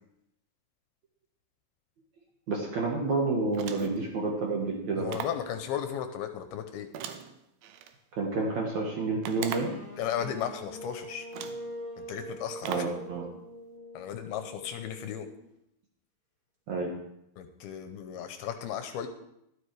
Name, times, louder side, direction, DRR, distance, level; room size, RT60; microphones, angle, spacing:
voice 1, 2.5-5.2 8.1-9.7 12.6-13.3 16.7-16.9, right 3 dB, 60° right, -1 dB, 2.1 m, -29 dB
sound 1, 3.5-4.1 5.1-5.5 6.9-7.9 9.2-9.9 10.8-10.9 11.3-11.7 12.6-13.0, right 9 dB, 75° right, 2.4 m, -39 dB
voice 2, 5.0-6.9 10.0-11.3 12.0-12.8 13.9-15.3 17.4-19.1, left 9 dB, 80° left, 7 dB, 2.5 m, -35 dB
sound 2, 9.6-15.5, right 1 dB, 35° right, 2.4 m, -44 dB
12.5 x 12.0 x 3.3 m, 0.81 s
omnidirectional pair, 4.7 m